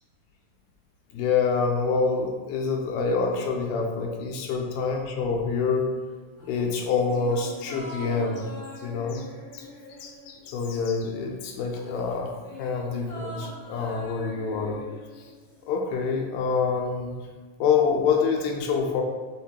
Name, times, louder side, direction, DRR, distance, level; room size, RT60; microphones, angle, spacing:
voice 1, 1.1-5.9 6.5-8.5 8.8-9.3 9.5-9.7 10.0-12.3 12.6-14.8 15.7-17.1 17.6-19.0, left 5 dB, 90° left, 1 dB, 2.4 m, -26 dB
sound 1, 6.4-11.1 11.4-15.7 16.0-16.1, equal, 60° left, 1.7 m, -44 dB
5.8 x 2.1 x 2.8 m, 1.4 s
omnidirectional pair, 4.0 m